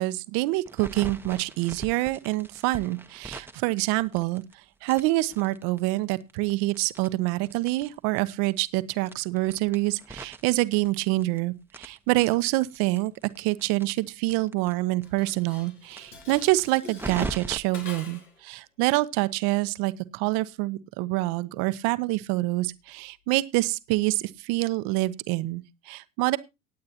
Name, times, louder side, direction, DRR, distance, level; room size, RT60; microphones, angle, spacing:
voice 1, 0.0-4.4 4.8-13.1 13.4-26.4, right 19 dB, 50° right, 0.9 m, -26 dB
sound 1, 0.7-4.5 4.8-7.9 8.2-8.3 8.5-8.6 9.0-11.4 11.7-14.7 15.0-15.1 15.4-15.5 15.9-17.6, right 2 dB, 5° right, 1.0 m, -40 dB
Dishes pots and pans, 15.0-18.4, left 3 dB, 85° left, 3.2 m, -44 dB
19.0 x 8.6 x 2.9 m
hypercardioid pair, 80°, 44 cm